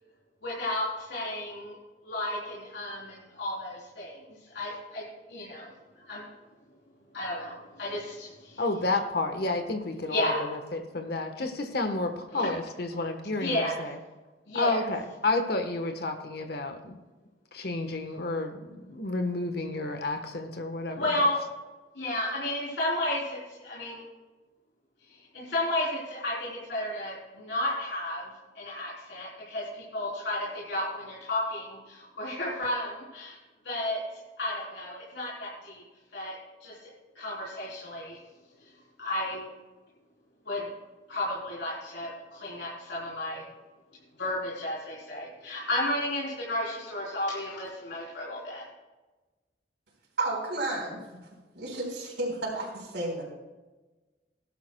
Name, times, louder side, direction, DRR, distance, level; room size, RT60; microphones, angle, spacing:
voice 1, 0.4-1.7 2.0-4.1 4.5-5.0 5.3-5.7 6.1-6.2 7.1-7.5 7.8-8.3 10.1-10.4 13.4-13.7 14.5-14.8 21.0-21.4 22.0-23.4 23.6-24.0 25.3-28.3 28.6-31.8 32.2-33.4 33.7-34.0 34.4-35.8 36.1-36.4 36.6-36.7 37.2-38.2 39.0-39.4 40.5-40.7 41.1-43.4 44.2-48.6, left 1 dB, 85° left, -6 dB, 3.6 m, -32 dB
voice 2, 8.6-14.0 14.5-17.0 17.5-21.3, left 2 dB, 65° left, 6 dB, 1.2 m, -31 dB
voice 3, 50.2-51.0 51.5-53.2, right 2 dB, 80° right, -3 dB, 4.0 m, -32 dB
18.5 x 11.5 x 2.3 m, 1.2 s
head